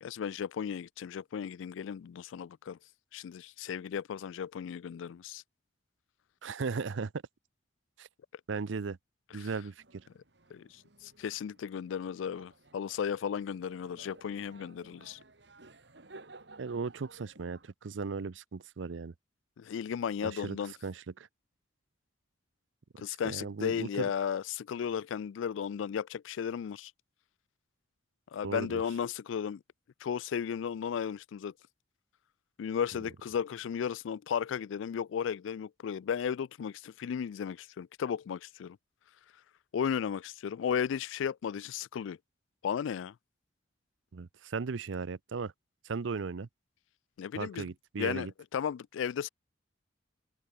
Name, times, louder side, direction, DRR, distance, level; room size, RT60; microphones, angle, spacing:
voice 1, 0.0-2.8 3.1-5.4 9.3-9.5 10.5-15.2 19.6-20.7 23.0-26.9 28.3-29.6 30.0-31.5 32.6-38.8 39.7-42.2 42.6-43.1 47.2-47.7 48.0-49.3, left 7 dB, 90° left, 0.3 m, -35 dB
voice 2, 6.4-7.1 8.0-8.1 8.5-9.0 9.3-10.0 16.6-19.1 20.2-20.6 20.8-21.3 23.1-24.1 28.4-28.8 44.1-45.5 45.8-46.5 47.4-48.3, right 4 dB, 85° right, 0.6 m, -37 dB
sound 1, 9.8-17.7, right 2 dB, 65° right, 2.5 m, -56 dB
open air
head